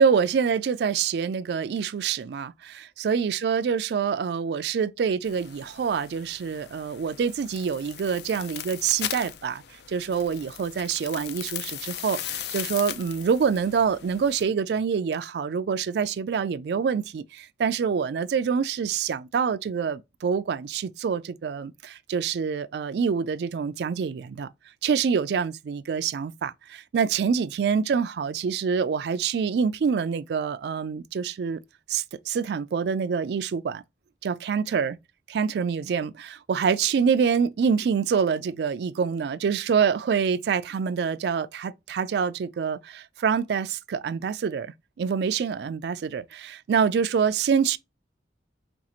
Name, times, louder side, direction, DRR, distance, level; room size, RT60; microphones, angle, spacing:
voice 1, 0.0-9.6 9.9-24.5 24.8-31.6 31.9-33.8 34.2-35.0 35.3-44.7 45.0-47.8, right 6 dB, 65° right, 0.3 m, -26 dB
sound 1, 5.2-14.4, left 10 dB, 65° left, 0.4 m, -38 dB
5.2 x 2.4 x 2.8 m
head